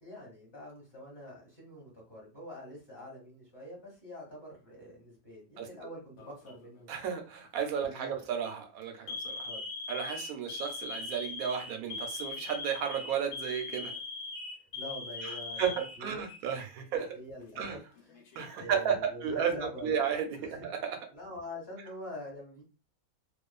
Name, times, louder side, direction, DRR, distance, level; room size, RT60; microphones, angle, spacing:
voice 1, 0.0-6.9 7.9-8.1 9.4-9.6 14.7-16.2 17.1-18.1 18.5-20.0 20.4-20.8 21.1-22.6, left 1 dB, 20° left, -4 dB, 1.1 m, -45 dB
Alarm, 6.2-6.7 7.6-7.9 8.3-8.5 9.1-16.6 16.9-17.0 18.0-18.7, left 3 dB, 60° left, 0.8 m, -41 dB
voice 2, 6.9-9.5 9.9-13.9 15.2-17.1 17.6-17.8 18.4-19.5 19.8-21.0, right 7 dB, 75° right, 5 dB, 1.0 m, -33 dB
2.5 x 2.4 x 2.3 m, 0.32 s
omnidirectional pair, 1.6 m